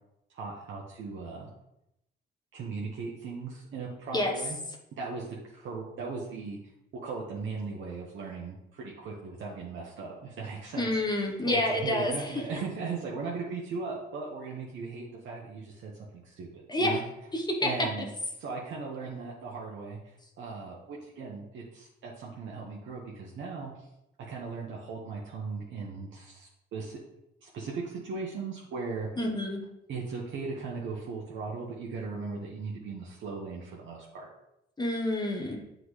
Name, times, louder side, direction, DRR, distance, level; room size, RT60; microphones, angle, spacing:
voice 1, 0.3-1.5 2.5-4.6 4.9-5.3 5.5-6.6 6.9-17.0 17.6-18.1 18.4-20.0 20.4-23.7 24.3-27.0 27.4-29.1 29.9-34.3, right 4 dB, 70° right, -3 dB, 1.0 m, -38 dB
voice 2, 10.8-12.4 16.7-17.0 17.3-17.7 29.2-29.6 34.8-35.6, left 1 dB, 20° left, 0 dB, 1.0 m, -28 dB
7.8 x 3.9 x 3.2 m, 0.85 s
cardioid pair, 90°, 20 cm